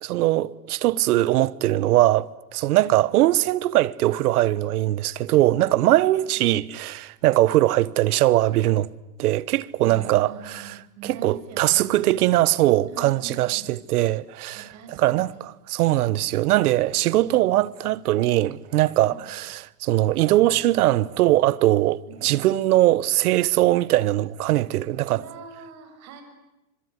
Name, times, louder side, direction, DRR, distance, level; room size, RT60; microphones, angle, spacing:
voice 1, 0.0-8.9 9.2-10.7 11.1-14.7 15.0-15.3 15.7-25.2, right 15 dB, 75° right, 1.2 m, -21 dB
voice 2, 6.1-6.5 9.8-12.1 12.9-13.7 14.5-15.5 16.9-17.3 19.0-19.3 22.1-22.5 25.1-26.2, right 5 dB, 35° right, 6.2 m, -43 dB
25.5 x 23.5 x 9.7 m
supercardioid pair, 150°, 45 cm